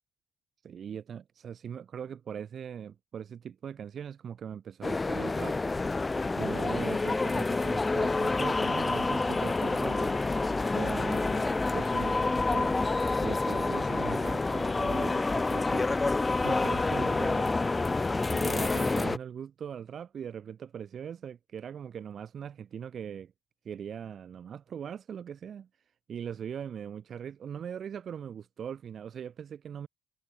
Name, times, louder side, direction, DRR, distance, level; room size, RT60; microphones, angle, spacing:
voice 1, 0.6-5.6 6.0-23.3 23.7-25.7 26.1-29.9, right 8 dB, 55° right, 5.0 m, -40 dB
sound 1, 4.8-19.2, left 3 dB, 20° left, 0.4 m, -28 dB
cardioid pair, 90°, 0 cm